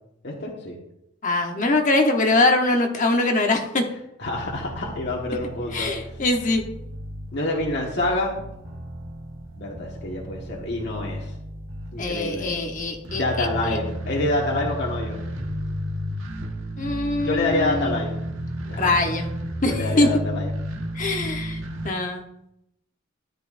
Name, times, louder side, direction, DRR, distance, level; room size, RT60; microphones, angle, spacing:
voice 1, 0.2-0.8 4.2-5.9 7.3-8.4 9.6-11.3 11.9-12.5 13.1-15.2 17.2-18.1 18.7-18.9 19.7-20.5, left 2 dB, 55° left, -2 dB, 1.6 m, -27 dB
voice 2, 1.2-3.8 5.7-6.6 12.0-13.8 16.8-18.0 18.8-19.3 19.6-20.1 20.9-22.2, left 2 dB, 40° left, 3 dB, 1.0 m, -23 dB
sound 1, 4.2-21.9, equal, 70° right, 1.4 m, -33 dB
13.5 x 10.0 x 2.6 m, 0.82 s
head